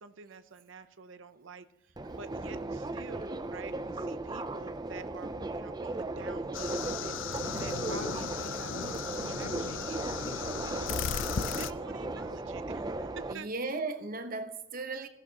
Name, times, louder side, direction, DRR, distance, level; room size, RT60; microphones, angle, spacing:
voice 1, 0.0-10.8 11.5-13.5, right 5 dB, 65° right, 0.7 m, -48 dB
Subway metro underground, 2.0-13.3, right 2 dB, 20° right, 0.5 m, -37 dB
sound 1, 6.5-11.7, left 7 dB, 65° left, 0.5 m, -36 dB
voice 2, 13.3-15.1, right 3 dB, 45° right, 1.0 m, -36 dB
17.5 x 14.5 x 2.9 m
head